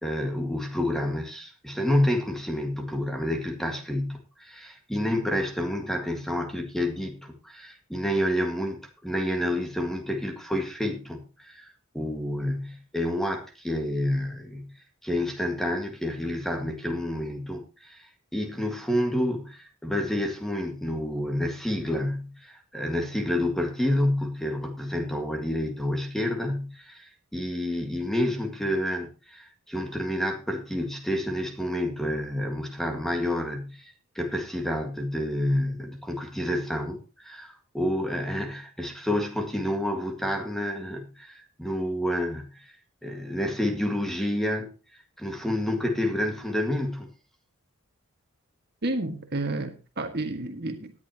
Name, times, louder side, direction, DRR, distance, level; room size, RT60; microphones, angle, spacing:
voice 1, 0.0-11.6 11.9-14.7 15.0-42.7 43.0-44.7 45.2-47.1, left 1 dB, ahead, 1.8 m, -29 dB
voice 2, 48.8-50.9, right 2 dB, 50° right, 1.8 m, -31 dB
18.0 x 10.5 x 2.9 m
head